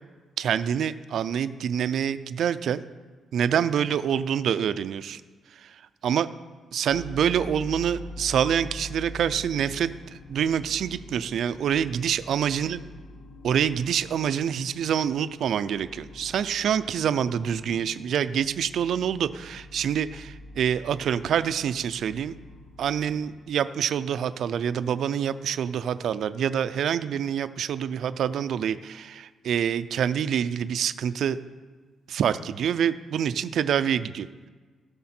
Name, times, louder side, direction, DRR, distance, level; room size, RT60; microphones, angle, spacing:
voice 1, 0.4-2.8 3.3-5.2 5.6-5.7 6.0-6.3 6.7-9.9 10.3-12.8 13.4-22.3 22.8-31.4 32.1-34.3, right 8 dB, 60° right, 13 dB, 0.4 m, -26 dB
sound 1, 6.9-23.4, left 2 dB, 55° left, 1.1 m, -45 dB
16.0 x 6.6 x 4.4 m, 1.4 s
cardioid pair, 170°, 0 cm